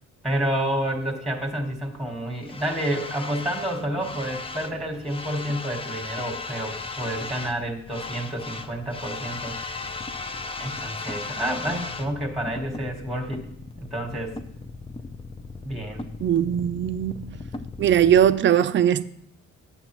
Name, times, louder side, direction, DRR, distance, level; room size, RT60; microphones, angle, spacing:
voice 1, 0.2-9.9 10.6-13.5 13.8-14.3 15.6-16.0, right 1 dB, ahead, 1.4 m, -29 dB
sound 1, 1.4-18.3, left 3 dB, 20° left, 0.5 m, -37 dB
voice 2, 16.2-17.2 17.8-19.0, right 10 dB, 40° right, 0.4 m, -20 dB
10.0 x 7.2 x 3.0 m
cardioid pair, 90°, 30 cm